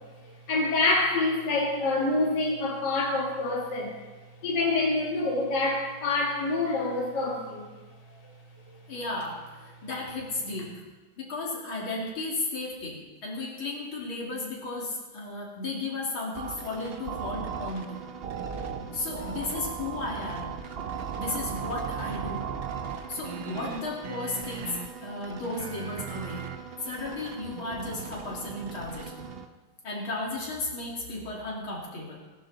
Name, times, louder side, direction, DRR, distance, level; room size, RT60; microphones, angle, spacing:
voice 1, 0.5-4.0 4.4-7.7, left 2 dB, 55° left, -3 dB, 2.5 m, -26 dB
voice 2, 8.9-10.7 11.2-18.0 18.9-20.6 21.2-22.5 23.1-26.4 26.8-29.2 29.8-32.2, left 2 dB, 75° left, -3 dB, 3.4 m, -34 dB
sound 1, 16.3-29.5, right 6 dB, 80° right, 0.5 m, -37 dB
18.0 x 11.5 x 4.0 m, 1.3 s
omnidirectional pair, 2.3 m